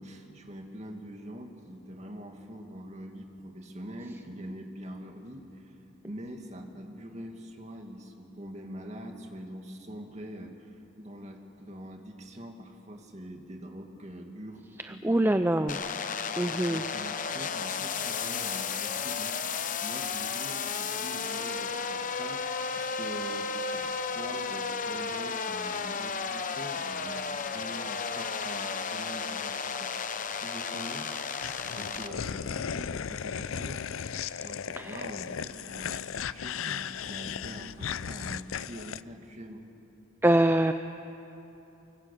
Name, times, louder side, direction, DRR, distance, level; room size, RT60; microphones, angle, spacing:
voice 1, 0.0-5.8 6.0-15.7 16.3-29.9 30.4-33.9 34.4-39.7, equal, 35° right, 3 dB, 2.2 m, -44 dB
voice 2, 14.8-15.8 16.4-16.8 34.3-34.4 34.8-35.0 40.2-40.7, right 1 dB, 10° right, 8 dB, 0.4 m, -25 dB
sound 1, 15.7-32.1, left 5 dB, 40° left, 0.9 m, -33 dB
sound 2, 31.4-39.0, left 7 dB, 80° left, 0.5 m, -36 dB
24.5 x 22.0 x 8.4 m, 3.0 s
head